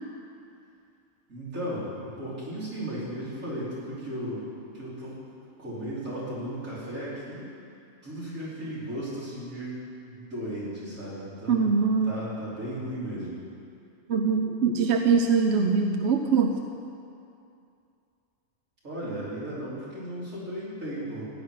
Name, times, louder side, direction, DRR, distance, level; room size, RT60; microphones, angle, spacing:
voice 1, 1.3-4.5 4.7-5.2 5.6-7.5 8.0-11.8 12.0-13.4 18.8-21.3, right 1 dB, 80° right, -9 dB, 4.9 m, -35 dB
voice 2, 11.5-12.2 14.1-16.6, right 5 dB, 60° right, 3 dB, 1.0 m, -23 dB
15.5 x 6.1 x 9.9 m, 2.5 s
omnidirectional pair, 1.4 m